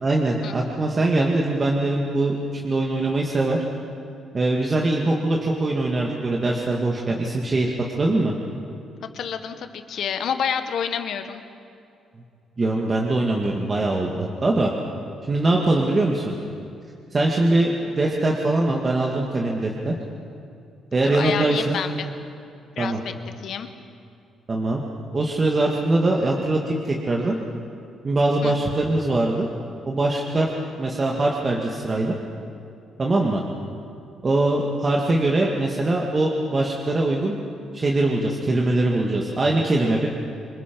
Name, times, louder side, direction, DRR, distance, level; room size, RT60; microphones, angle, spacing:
voice 1, 0.0-3.6 4.3-8.4 12.6-14.7 15.3-16.4 17.1-19.9 20.9-21.8 22.8-23.0 24.5-24.8 25.1-27.4 28.0-29.5 29.9-30.5 30.8-32.2 33.0-33.4 34.2-37.4 37.7-40.1, right 2 dB, 30° right, -1 dB, 2.1 m, -22 dB
voice 2, 9.0-11.4 21.0-22.1 22.7-23.7 28.4-28.6, left 7 dB, 70° left, 8 dB, 1.5 m, -29 dB
27.0 x 21.0 x 5.4 m, 2.5 s
cardioid pair, 90°, 0 cm